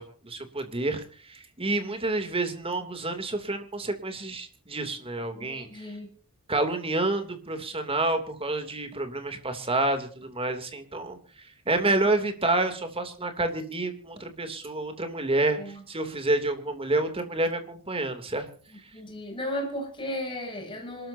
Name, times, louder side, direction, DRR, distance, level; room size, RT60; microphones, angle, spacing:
voice 1, 0.0-6.0 6.5-18.5 18.8-18.9, right 2 dB, 25° right, 2.8 m, -29 dB
voice 2, 5.3-6.1 11.8-12.3 15.6-15.8 18.9-21.1, left 1 dB, 25° left, 7.1 m, -35 dB
26.5 x 13.0 x 2.8 m
head